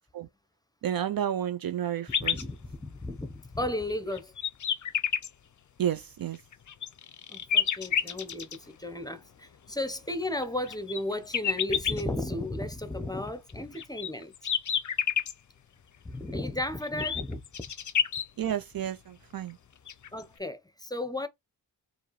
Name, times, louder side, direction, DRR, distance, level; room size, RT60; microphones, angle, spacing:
voice 1, 0.8-2.4 5.8-6.4 18.4-19.6, right 10 dB, 50° right, 0.5 m, -31 dB
sound 1, 2.1-2.4 3.2-3.3 3.9-5.3 6.4-8.6 10.2-12.0 13.5-15.3 16.8-18.3 19.5-19.6 19.9-20.2, left 8 dB, 40° left, 0.6 m, -29 dB
voice 2, 2.2-4.3 7.3-14.3 16.0-17.4 20.1-21.3, left 1 dB, 10° left, 0.8 m, -34 dB
4.5 x 2.7 x 3.1 m
supercardioid pair, 40°, 46 cm